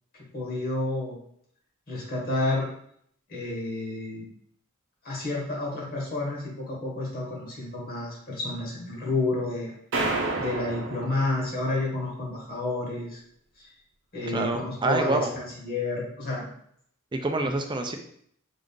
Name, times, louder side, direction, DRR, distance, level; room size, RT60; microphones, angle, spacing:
voice 1, 0.3-1.2 1.9-2.7 3.3-4.3 5.0-9.7 10.4-13.2 13.6-13.7 14.1-16.5, left 2 dB, 45° left, -4 dB, 1.4 m, -30 dB
sound 1, 9.9-11.9, right 2 dB, 60° right, 0.7 m, -30 dB
voice 2, 14.3-15.3 17.1-18.0, right 2 dB, 20° right, 5 dB, 0.4 m, -26 dB
3.6 x 2.5 x 3.7 m, 0.66 s
head